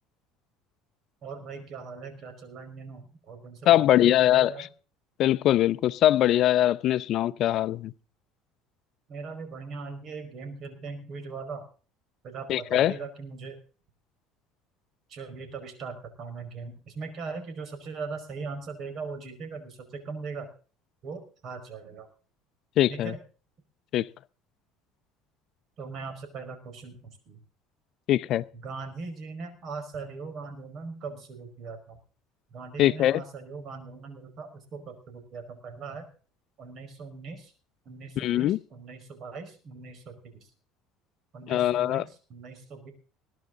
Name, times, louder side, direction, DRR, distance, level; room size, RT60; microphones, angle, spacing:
voice 1, 1.2-4.7 9.1-11.6 12.2-13.6 15.1-20.5 21.0-22.1 22.9-23.2 25.8-27.4 28.5-32.0 32.5-36.1 36.6-37.5 37.9-40.5 41.3-42.9, right 4 dB, 50° right, 5.2 m, -40 dB
voice 2, 3.7-4.5 5.2-7.9 12.5-12.9 22.8-23.1 23.9-24.1 28.1-28.4 32.8-33.2 38.2-38.6 41.5-42.0, left 13 dB, 55° left, 0.6 m, -22 dB
21.0 x 11.0 x 3.9 m
supercardioid pair, 105°, 0 cm